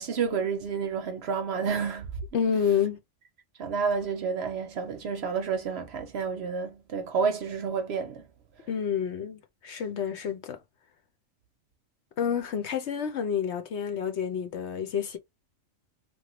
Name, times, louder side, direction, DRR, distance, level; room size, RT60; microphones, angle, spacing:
voice 1, 0.0-2.1 3.6-8.3, right 5 dB, 60° right, 0.8 m, -30 dB
voice 2, 2.3-3.0 8.7-10.6 12.2-15.2, left 7 dB, 65° left, 0.9 m, -29 dB
3.0 x 2.2 x 2.9 m
omnidirectional pair, 1.4 m